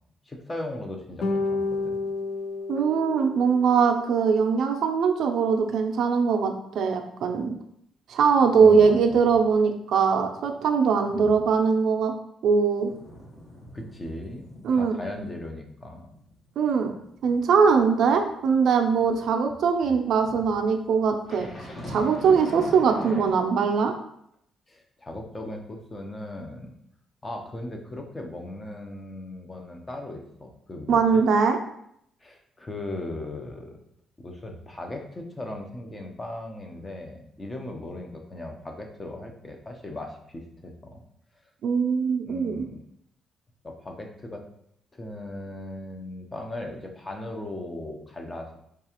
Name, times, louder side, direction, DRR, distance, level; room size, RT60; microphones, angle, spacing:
voice 1, 0.3-2.0 8.6-9.2 11.1-11.4 13.7-16.1 19.8-19.9 24.7-26.7 27.2-31.3 32.2-33.8 34.2-41.0 42.2-42.8 43.6-44.4 44.9-48.6, left 1 dB, 20° left, 3 dB, 0.7 m, -38 dB
sound 1, 1.2-3.8, left 3 dB, 65° left, 0.5 m, -30 dB
voice 2, 2.7-7.5 8.1-12.1 12.4-12.9 14.6-15.0 16.6-16.9 17.2-21.5 21.9-23.9 30.9-31.6 41.6-42.6, right 5 dB, 70° right, 4 dB, 0.4 m, -21 dB
sound 2, 12.8-14.7 15.0-15.3 15.7-19.3 20.2-23.3, left 1 dB, 40° left, 1.1 m, -42 dB
4.6 x 2.4 x 2.9 m, 0.72 s
cardioid pair, 90°, 0 cm